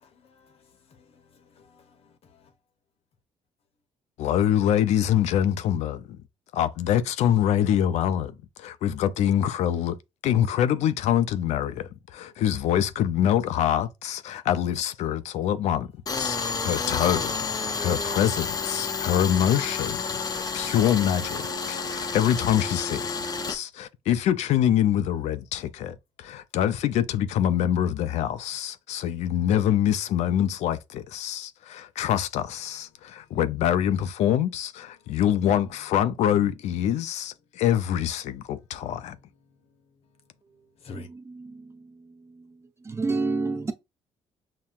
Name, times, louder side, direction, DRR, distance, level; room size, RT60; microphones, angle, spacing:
voice 1, 0.0-2.5 20.5-20.8 35.0-35.2 40.8-41.1, left 3 dB, 60° left, 0.9 m, -49 dB
voice 2, 4.2-6.2 6.5-10.0 10.2-15.9 16.1-39.2, left 10 dB, 80° left, 0.4 m, -25 dB
Tools, 16.1-23.6, left 4 dB, 35° left, 0.6 m, -30 dB
voice 3, 40.9-42.6 42.8-43.7, right 3 dB, 25° right, 0.6 m, -31 dB
5.7 x 2.2 x 2.4 m
cardioid pair, 90°, 12 cm